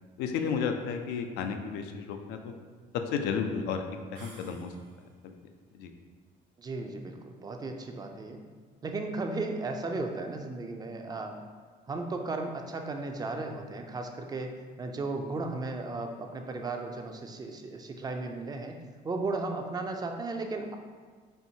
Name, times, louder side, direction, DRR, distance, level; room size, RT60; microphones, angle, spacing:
voice 1, 0.2-2.5 3.1-3.9 4.1-4.7 5.2-5.3 5.7-5.9, left 6 dB, 90° left, 6 dB, 0.4 m, -32 dB
sound 1, 4.1-5.2, right 2 dB, 85° right, 1.1 m, -53 dB
voice 2, 6.6-8.4 8.8-11.4 11.9-18.8 19.0-20.7, right 3 dB, 25° right, 4 dB, 0.4 m, -35 dB
4.4 x 3.4 x 2.7 m, 1.5 s
cardioid pair, 110°, 17 cm